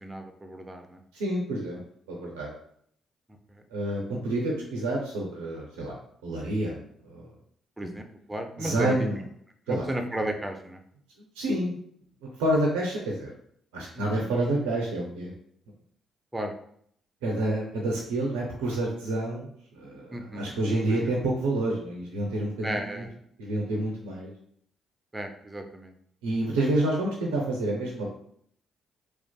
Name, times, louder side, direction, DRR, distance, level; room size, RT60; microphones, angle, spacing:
voice 1, 0.0-1.0 7.8-9.0 9.7-10.8 14.0-14.3 16.3-16.5 20.1-20.5 20.9-21.0 22.6-23.1 25.1-25.9, right 1 dB, 15° right, 4 dB, 0.5 m, -34 dB
voice 2, 1.1-1.8 2.1-2.5 3.7-6.0 6.2-6.8 7.0-7.3 7.8-7.9 8.6-9.2 9.7-9.9 11.4-11.8 12.4-13.3 13.7-15.3 17.2-23.1 23.4-24.3 26.2-28.1, right 1 dB, 85° right, -3 dB, 0.4 m, -28 dB
2.5 x 2.3 x 2.2 m, 0.66 s
hypercardioid pair, 45°, 0 cm